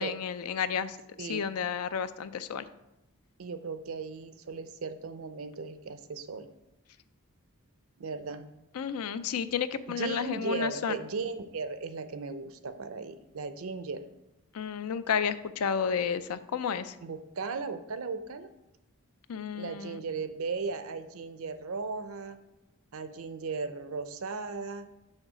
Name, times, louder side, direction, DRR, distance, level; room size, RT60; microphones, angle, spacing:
voice 1, 0.0-2.7 8.7-11.0 14.5-17.0 19.3-20.0, left 7 dB, 90° left, 13 dB, 0.4 m, -32 dB
voice 2, 3.4-6.5 8.0-8.5 9.9-14.1 17.0-18.5 19.5-22.4 22.9-24.9, right 4 dB, 70° right, 11 dB, 0.6 m, -36 dB
6.5 x 3.8 x 6.1 m, 0.95 s
head